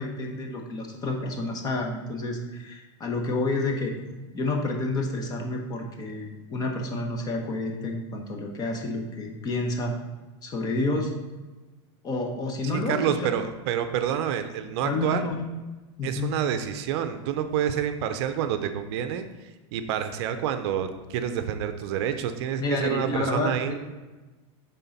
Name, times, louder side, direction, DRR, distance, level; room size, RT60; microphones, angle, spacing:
voice 1, 0.0-4.0 4.3-9.9 10.4-11.1 12.0-13.4 14.8-15.3 16.0-16.3 22.6-23.8, left 2 dB, 25° left, 2 dB, 1.0 m, -29 dB
voice 2, 12.7-15.3 16.0-19.3 19.7-23.8, right 9 dB, 60° right, 9 dB, 0.6 m, -28 dB
9.9 x 3.8 x 4.1 m, 1.2 s
supercardioid pair, 145°, 16 cm